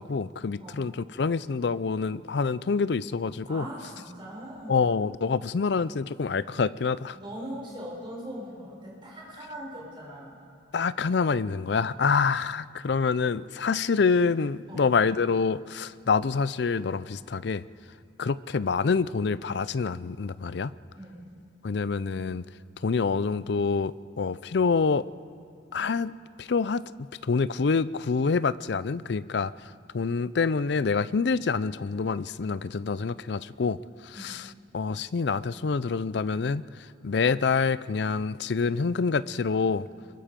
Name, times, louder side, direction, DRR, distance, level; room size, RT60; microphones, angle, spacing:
voice 1, 0.0-3.7 4.7-7.2 10.7-17.6 18.2-20.7 21.6-22.4 22.8-25.0 25.7-26.1 26.4-26.8 27.2-29.5 29.9-33.8 34.0-36.7 37.0-39.9, left 5 dB, 60° left, 17 dB, 0.4 m, -26 dB
voice 2, 3.5-4.8 7.1-10.4 14.7-14.9 20.9-21.2 34.1-34.2, right 1 dB, 25° right, -4 dB, 6.1 m, -40 dB
26.0 x 22.5 x 5.2 m, 2.6 s
head